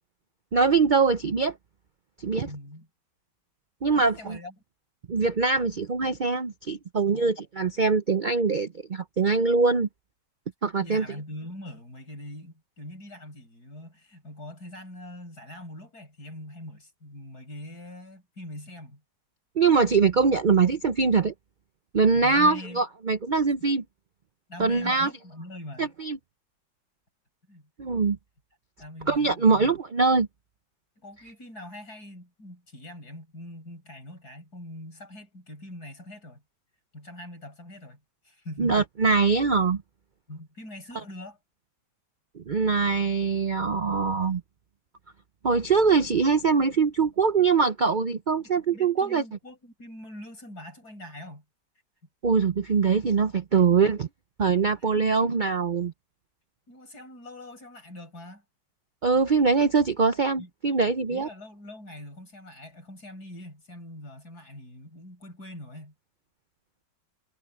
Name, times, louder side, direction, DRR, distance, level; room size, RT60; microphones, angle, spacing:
voice 1, 0.5-1.5 2.2-2.5 3.8-4.4 5.1-9.9 10.6-11.0 19.6-21.3 21.9-23.8 24.6-25.1 25.8-26.2 27.8-28.2 29.1-30.3 38.6-39.8 42.3-44.4 45.4-49.2 52.2-54.1 54.4-55.9 59.0-61.3, right 4 dB, 75° right, 0.4 m, -23 dB
voice 2, 2.4-2.9 3.9-4.5 7.1-7.4 10.8-19.0 22.1-22.8 24.5-25.9 27.5-27.7 28.8-29.7 31.0-36.4 36.9-38.8 40.3-41.4 48.7-51.4 54.8-55.0 56.7-58.4 60.4-60.5 61.1-65.9, left 1 dB, 60° left, 8.0 m, -43 dB
omnidirectional pair, 1.9 m